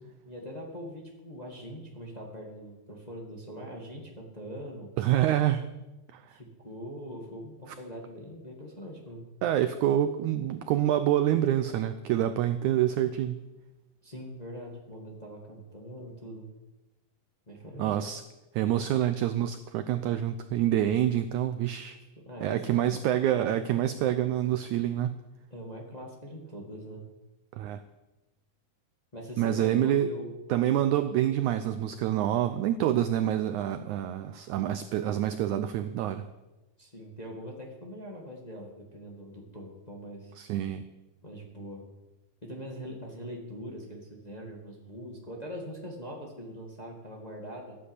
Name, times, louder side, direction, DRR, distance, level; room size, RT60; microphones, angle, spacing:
voice 1, 0.0-4.9 6.3-9.3 14.0-16.5 17.5-18.0 22.2-23.1 25.5-27.0 29.1-30.3 36.8-40.3 41.2-41.9 42.4-47.8, equal, 15° left, 0 dB, 1.5 m, -42 dB
voice 2, 5.0-5.7 6.1-6.2 9.4-13.4 17.8-18.2 18.5-22.0 22.4-25.2 27.6-27.8 29.4-30.2 30.5-36.3 40.4-40.8, right 11 dB, 85° right, 11 dB, 1.7 m, -27 dB
14.0 x 10.0 x 8.3 m, 1.1 s
omnidirectional pair, 4.1 m